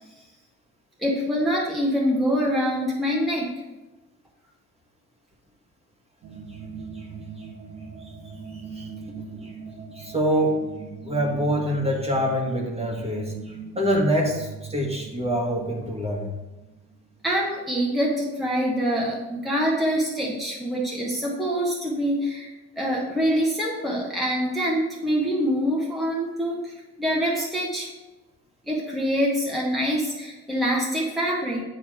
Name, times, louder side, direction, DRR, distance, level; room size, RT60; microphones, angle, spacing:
voice 1, 1.0-3.5 17.2-22.5 22.8-27.9 28.7-31.6, equal, ahead, -5 dB, 1.2 m, -25 dB
sound 1, 6.2-17.9, right 5 dB, 75° right, 1.4 m, -41 dB
voice 2, 8.5-8.9 9.4-9.5 9.9-10.6 11.0-16.3, equal, 20° right, 0 dB, 1.5 m, -25 dB
8.8 x 3.0 x 4.8 m, 1.1 s
cardioid pair, 90°, 30 cm